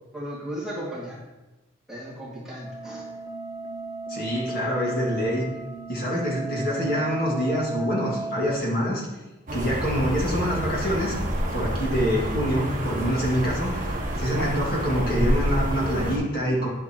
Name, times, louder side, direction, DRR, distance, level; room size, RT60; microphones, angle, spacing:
voice 1, 0.1-1.2 1.9-3.0, equal, 5° right, -8 dB, 2.2 m, -35 dB
sound 1, 2.6-8.6, right 3 dB, 80° left, 1.5 m, -35 dB
voice 2, 4.1-5.4 5.9-9.0 9.5-11.2 11.5-16.7, equal, 45° left, -5 dB, 2.3 m, -26 dB
sound 2, 9.5-16.2, equal, 40° right, 1.4 m, -28 dB
10.5 x 7.7 x 3.0 m, 1.1 s
head